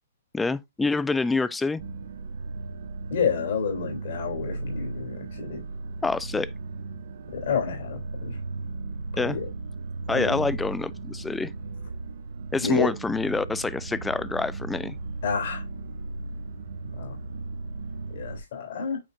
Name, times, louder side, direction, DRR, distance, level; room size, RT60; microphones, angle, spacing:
voice 1, 0.3-1.8 6.0-6.5 9.2-9.4 10.1-11.5 12.5-15.0, left 3 dB, 5° left, 0.4 m, -26 dB
sound 1, 1.8-18.4, right 3 dB, 65° right, 1.1 m, -36 dB
voice 2, 3.1-5.6 7.3-8.4 9.3-9.5 10.1-10.5 12.6-12.9 15.2-15.6 17.0-17.2 18.1-19.0, left 6 dB, 60° left, 3.4 m, -29 dB
8.9 x 4.3 x 2.6 m
hypercardioid pair, 150°, 0 cm